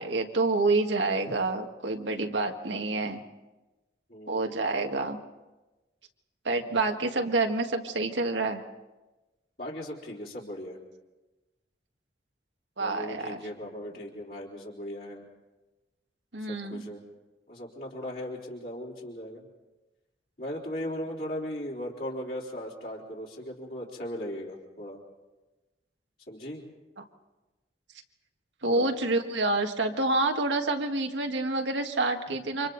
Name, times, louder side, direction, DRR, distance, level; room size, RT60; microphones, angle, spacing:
voice 1, 0.0-3.2 4.3-5.2 6.5-8.6 12.8-13.4 16.3-16.9 28.6-32.7, right 2 dB, 85° right, 4 dB, 1.8 m, -28 dB
voice 2, 4.1-4.5 9.6-10.8 12.8-15.3 16.5-17.0 17.5-19.5 20.4-25.0 26.3-26.6 28.7-28.9, equal, 55° left, -4 dB, 4.0 m, -38 dB
29.0 x 25.5 x 4.1 m, 1.1 s
head